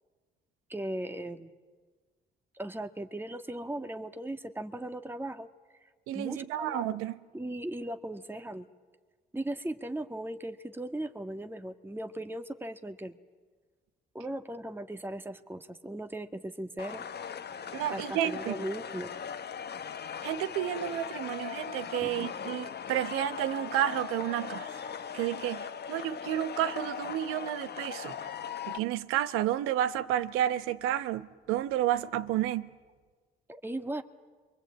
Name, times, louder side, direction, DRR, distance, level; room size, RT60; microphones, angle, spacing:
voice 1, 0.7-1.5 2.5-5.5 5.8-5.9 6.1-7.0 7.3-8.7 9.3-13.2 14.2-17.1 17.9-19.1 22.0-22.3 33.5-34.0, right 1 dB, 10° right, 1.7 m, -38 dB
voice 2, 6.1-7.2 17.7-18.5 20.2-28.1 28.7-32.7, right 12 dB, 85° right, 1.1 m, -31 dB
sound 1, 16.8-28.8, left 7 dB, 50° left, 1.2 m, -39 dB
28.5 x 23.5 x 8.8 m
supercardioid pair, 55°, 21 cm